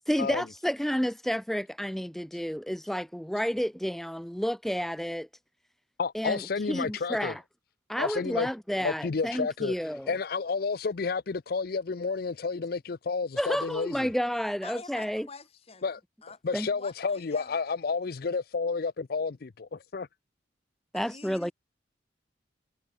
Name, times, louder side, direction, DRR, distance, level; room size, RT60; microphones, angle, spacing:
voice 1, 0.1-5.3 6.1-6.4 6.7-7.4 7.9-10.2 13.4-15.3 16.5-16.7 20.9-21.5, equal, ahead, 0.5 m, -30 dB
voice 2, 6.0-7.4 8.0-8.5 8.8-9.7 10.1-14.1 15.8-16.0 16.4-20.1, left 4 dB, 55° left, 0.5 m, -31 dB
voice 3, 14.6-15.9 16.2-16.4 16.7-17.5 20.9-21.5, left 4 dB, 35° left, 1.7 m, -46 dB
head